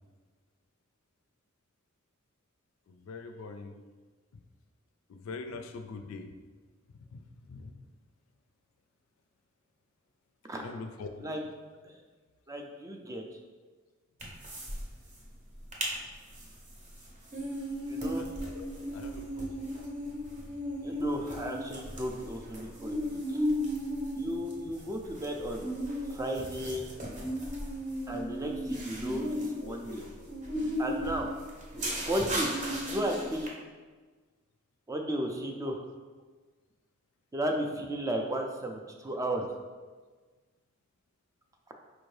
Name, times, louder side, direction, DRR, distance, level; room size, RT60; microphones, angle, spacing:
voice 1, 2.9-3.8 5.1-6.2 7.1-7.2 7.5-7.7 10.5-11.4 18.1-19.7 24.9-25.0 29.6-29.8, left 4 dB, 75° left, 7 dB, 0.4 m, -43 dB
voice 2, 12.5-13.2 17.9-18.3 20.8-23.4 24.1-25.7 26.1-26.9 28.1-29.2 29.6-30.0 30.8-31.3 32.0-32.6 32.9-33.5 34.9-35.8 37.3-39.5, right 1 dB, 15° right, 2 dB, 0.3 m, -34 dB
sound 1, 14.2-14.8 15.1-15.2 15.5-15.9 16.3-33.5, equal, 35° right, 0.7 m, -35 dB
4.4 x 2.6 x 3.2 m, 1.4 s
head